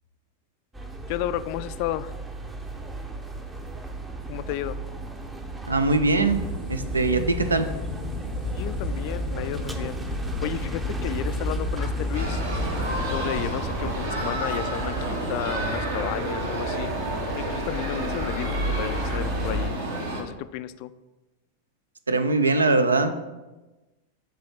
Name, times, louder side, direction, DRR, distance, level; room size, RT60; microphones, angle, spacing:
sound 1, 0.7-19.7, right 1 dB, 10° right, 0.6 m, -34 dB
voice 1, 1.1-2.1 4.3-4.8 8.5-12.4 13.1-16.9 17.4-19.7 20.1-20.9, left 13 dB, 45° left, 14 dB, 0.3 m, -33 dB
voice 2, 5.7-6.4 6.7-7.7 22.1-23.2, right 3 dB, 75° right, 10 dB, 0.5 m, -22 dB
sound 2, 6.2-13.5, left 2 dB, 40° right, 2.5 m, -32 dB
sound 3, 12.1-20.2, right 1 dB, 60° right, 1.3 m, -30 dB
7.6 x 3.4 x 5.8 m, 1.1 s
figure-of-eight pair, 90°, 0 cm